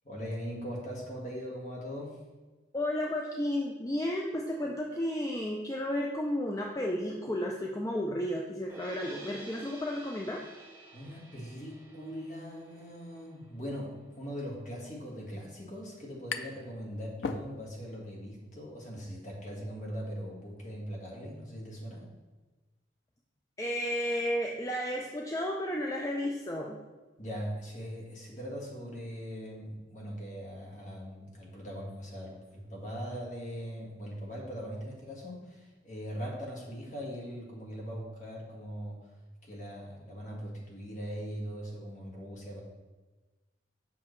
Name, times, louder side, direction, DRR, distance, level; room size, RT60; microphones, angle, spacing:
voice 1, 0.0-2.2 10.9-22.1 27.2-39.0 39.5-42.6, equal, 45° left, -3 dB, 1.7 m, -40 dB
voice 2, 2.7-10.4 23.6-26.8, left 1 dB, 20° left, 0 dB, 0.4 m, -32 dB
sound 1, 8.7-14.9, right 2 dB, 10° right, 1.5 m, -51 dB
sound 2, 16.3-16.7 17.0-17.9, left 5 dB, 85° left, 0.5 m, -38 dB
7.3 x 5.7 x 3.2 m, 1.2 s
head